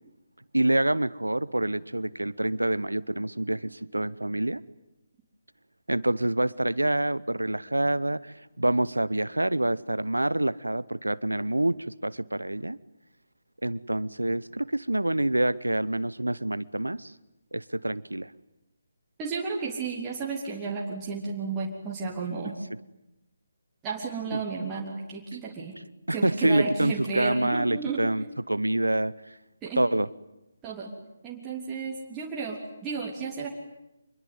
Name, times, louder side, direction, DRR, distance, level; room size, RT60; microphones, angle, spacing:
voice 1, 0.5-4.6 5.9-12.8 13.6-17.1 17.5-18.3 24.3-24.4 26.1-29.4 29.8-30.1, right 1 dB, 90° right, 17 dB, 0.9 m, -27 dB
voice 2, 19.2-22.5 23.8-25.8 26.1-28.0 29.6-29.9 30.6-30.9 31.2-33.5, right 4 dB, 15° right, -4 dB, 3.4 m, -33 dB
26.5 x 22.0 x 9.6 m, 0.91 s
figure-of-eight pair, 150°, 0 cm